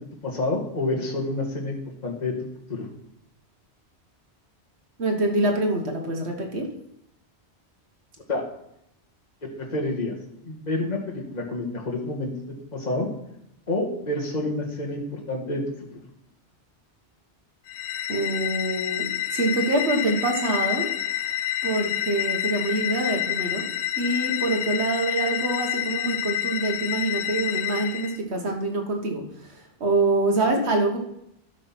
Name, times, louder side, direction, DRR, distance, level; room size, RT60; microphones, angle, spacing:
voice 1, 0.2-2.3 2.7-2.9 8.3-8.4 9.5-10.2 10.4-12.3 12.7-13.1 13.7-15.6, left 2 dB, 40° left, -2 dB, 1.8 m, -28 dB
voice 2, 5.0-6.7 18.1-21.3 21.6-23.7 24.0-31.0, right 2 dB, 75° right, 2 dB, 1.7 m, -25 dB
sound 1, 17.7-28.2, left 12 dB, 80° left, 0.9 m, -28 dB
12.5 x 5.0 x 6.0 m, 0.79 s
omnidirectional pair, 1.1 m